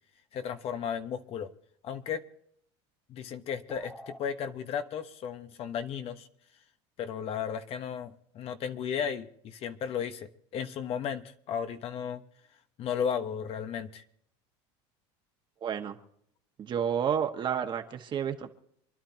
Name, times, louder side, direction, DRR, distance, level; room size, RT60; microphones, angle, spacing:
voice 1, 0.3-1.5 1.8-2.2 3.1-6.3 7.0-12.2 12.8-14.0, left 7 dB, 45° left, 8 dB, 1.3 m, -34 dB
sound 1, 3.7-4.2, equal, 5° left, 1.9 m, -45 dB
voice 2, 15.6-16.0 16.6-18.5, right 8 dB, 35° right, 6 dB, 1.6 m, -30 dB
28.0 x 11.5 x 2.9 m, 0.70 s
supercardioid pair, 125°, 14 cm